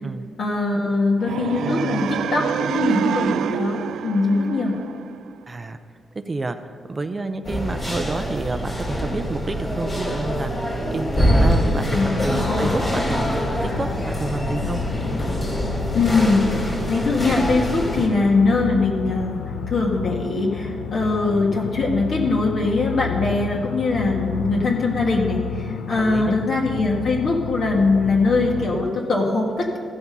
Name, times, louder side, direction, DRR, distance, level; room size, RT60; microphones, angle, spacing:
voice 1, 0.4-4.8 11.9-12.7 15.9-19.4 19.7-29.8, left 3 dB, 50° left, -1 dB, 1.6 m, -21 dB
sound 1, 1.2-5.3, right 8 dB, 80° right, 0.3 m, -26 dB
voice 2, 5.5-5.8 6.3-6.6 6.9-14.8 25.9-26.4, right 3 dB, 25° right, 9 dB, 0.5 m, -29 dB
sound 2, 7.4-18.1, equal, 30° left, 2.1 m, -24 dB
sound 3, 11.4-28.9, left 9 dB, 85° left, 0.6 m, -31 dB
14.5 x 6.0 x 5.4 m, 2.3 s
cardioid pair, 130°, 0 cm